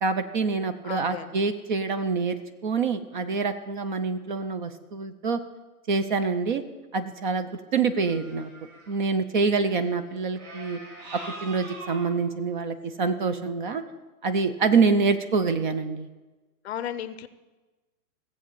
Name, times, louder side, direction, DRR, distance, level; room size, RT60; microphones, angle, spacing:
voice 1, 0.0-5.4 5.9-6.6 6.9-8.5 8.9-10.8 11.1-13.8 14.2-16.1, right 4 dB, 35° right, 12 dB, 0.6 m, -26 dB
voice 2, 0.8-1.4 9.7-10.0 16.6-17.3, left 10 dB, 45° left, 13 dB, 0.6 m, -35 dB
sound 1, 7.8-9.0 10.4-12.1 13.0-13.1, right 2 dB, 65° right, 5.2 m, -42 dB
16.0 x 7.6 x 7.0 m, 1.2 s
hypercardioid pair, 155°, 46 cm